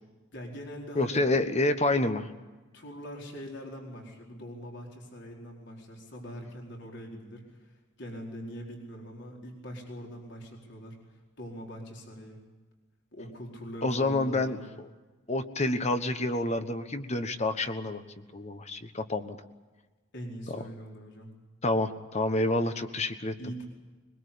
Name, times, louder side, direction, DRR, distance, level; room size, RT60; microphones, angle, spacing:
voice 1, 0.3-1.3 2.7-11.0 11.4-12.4 13.1-14.6 20.1-21.3 23.4-23.7, equal, 55° left, 0 dB, 4.6 m, -42 dB
voice 2, 0.9-2.3 13.8-14.9 15.3-18.0 18.3-19.4 21.6-23.3, left 2 dB, 30° left, 9 dB, 1.3 m, -28 dB
22.0 x 22.0 x 8.5 m, 1.2 s
head